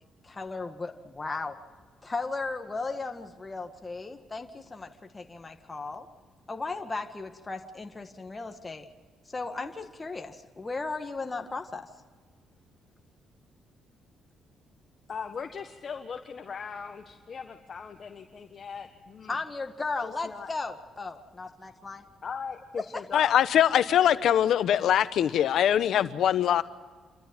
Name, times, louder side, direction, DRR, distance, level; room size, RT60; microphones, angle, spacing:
voice 1, 0.2-1.6 2.0-6.1 6.5-8.9 9.3-11.9 19.3-22.0 22.9-23.0, left 3 dB, 25° left, 5 dB, 1.8 m, -36 dB
voice 2, 15.1-19.4 20.0-20.5 22.2-23.3 24.0-24.1, left 6 dB, 45° left, 4 dB, 1.5 m, -39 dB
voice 3, 23.1-26.6, left 10 dB, 70° left, 13 dB, 1.0 m, -22 dB
28.0 x 13.5 x 9.0 m, 1.4 s
cardioid pair, 90°, 0 cm